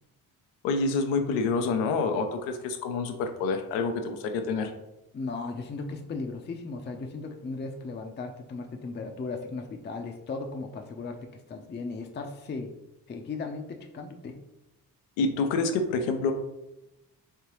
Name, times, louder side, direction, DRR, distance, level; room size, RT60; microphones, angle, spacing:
voice 1, 0.6-4.7 15.2-16.3, left 4 dB, 85° left, 6 dB, 0.6 m, -27 dB
voice 2, 5.1-12.7 13.1-14.4, left 3 dB, 25° left, 4 dB, 0.5 m, -36 dB
3.5 x 3.4 x 3.0 m, 0.91 s
hypercardioid pair, 50°, 43 cm